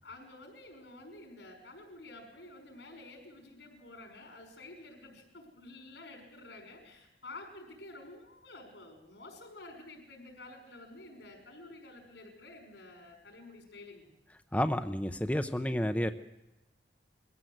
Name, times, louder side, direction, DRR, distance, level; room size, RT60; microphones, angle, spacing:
voice 1, 0.0-14.1, left 2 dB, 85° left, 2 dB, 5.7 m, -50 dB
voice 2, 14.5-16.1, equal, 10° left, 8 dB, 0.7 m, -30 dB
22.0 x 15.5 x 8.0 m, 0.93 s
head